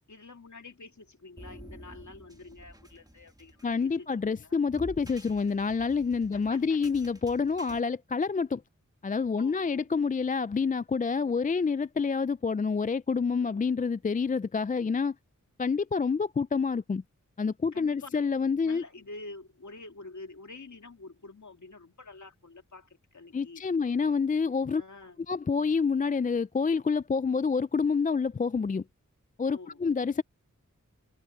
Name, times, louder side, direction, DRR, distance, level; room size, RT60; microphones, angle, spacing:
voice 1, 0.1-4.6 6.3-6.8 9.4-9.9 13.4-13.8 17.7-18.2 18.6-23.7 24.7-25.3 29.5-29.8, left 3 dB, 65° left, 2.7 m, -48 dB
sound 1, 1.4-7.8, right 1 dB, 10° right, 1.5 m, -50 dB
voice 2, 3.6-8.6 9.0-15.1 15.6-17.0 17.4-18.8 23.3-24.8 25.3-28.8 29.4-30.2, left 5 dB, 25° left, 0.4 m, -28 dB
cardioid pair, 40°, 31 cm